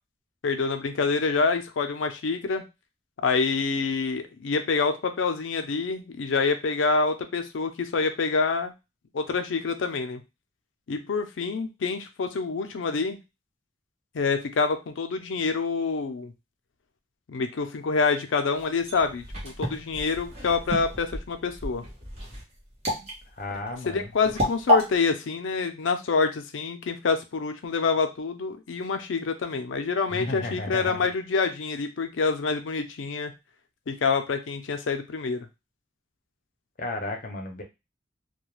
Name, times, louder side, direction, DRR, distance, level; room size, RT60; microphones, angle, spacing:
voice 1, 0.4-2.6 3.2-8.7 9.1-10.2 10.9-13.2 14.1-16.3 17.3-21.8 23.9-33.3 33.9-35.5, left 4 dB, 90° left, 8 dB, 0.5 m, -27 dB
sound 1, 18.5-24.8, left 1 dB, 35° right, 0.9 m, -29 dB
voice 2, 23.4-24.1 30.1-31.0 36.8-37.6, left 2 dB, 45° left, 3 dB, 0.6 m, -34 dB
2.3 x 2.2 x 3.0 m, 0.25 s
head